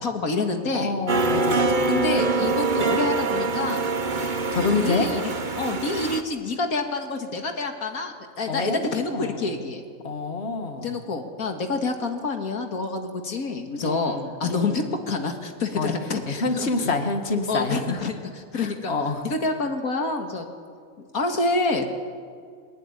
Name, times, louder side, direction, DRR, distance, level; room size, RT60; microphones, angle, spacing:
voice 1, 0.0-0.9 1.9-3.8 4.6-9.8 10.8-16.9 17.5-18.9 19.2-20.5 21.0-21.9, left 3 dB, 85° left, 5 dB, 2.4 m, -27 dB
voice 2, 0.7-1.9 4.5-5.1 8.5-9.6 10.0-11.0 13.8-14.8 15.8-15.9 16.3-18.0 18.5-19.2, left 3 dB, 50° left, 5 dB, 2.1 m, -27 dB
sound 1, 1.1-6.2, right 3 dB, 35° right, 1.3 m, -24 dB
22.5 x 19.0 x 9.9 m, 2.1 s
omnidirectional pair, 1.5 m